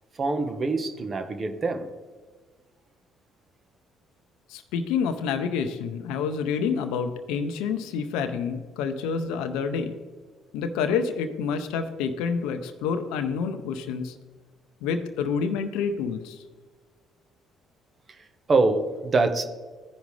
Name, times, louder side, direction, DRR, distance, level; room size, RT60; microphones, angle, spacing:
voice 1, 0.1-1.9 18.1-19.5, right 3 dB, 40° right, 7 dB, 1.1 m, -25 dB
voice 2, 4.5-9.9 10.5-14.2 14.8-16.4, left 6 dB, 80° left, 8 dB, 0.6 m, -28 dB
15.0 x 5.2 x 3.2 m, 1.4 s
supercardioid pair, 65°, 0 cm